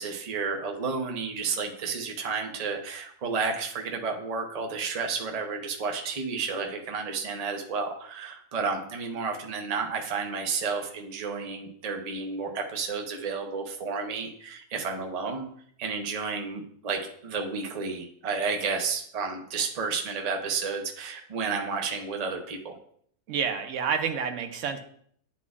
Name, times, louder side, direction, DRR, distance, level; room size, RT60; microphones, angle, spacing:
voice 1, 0.0-15.5 15.8-22.8, right 5 dB, 35° right, 3 dB, 0.6 m, -31 dB
voice 2, 23.3-24.8, right 7 dB, 60° right, 7 dB, 1.0 m, -29 dB
9.7 x 4.2 x 2.4 m, 0.63 s
omnidirectional pair, 1.6 m